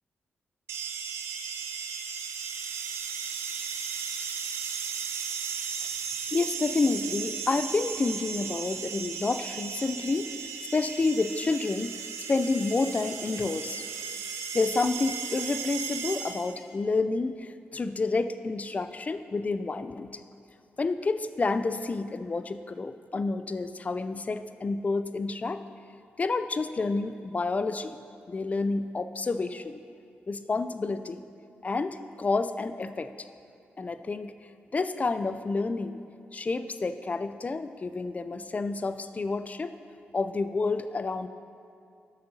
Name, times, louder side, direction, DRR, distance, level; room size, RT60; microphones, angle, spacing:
sound 1, 0.7-16.6, right 7 dB, 90° right, 0.5 m, -36 dB
voice 1, 6.3-12.0 12.3-13.8 14.5-20.2 20.8-25.6 26.2-28.0 28.3-29.8 30.3-31.2 31.6-33.1 33.8-34.3 34.7-36.0 36.3-39.7 40.1-41.3, left 3 dB, 35° left, 11 dB, 0.4 m, -29 dB
11.5 x 6.7 x 2.8 m, 2.5 s
cardioid pair, 55°, 4 cm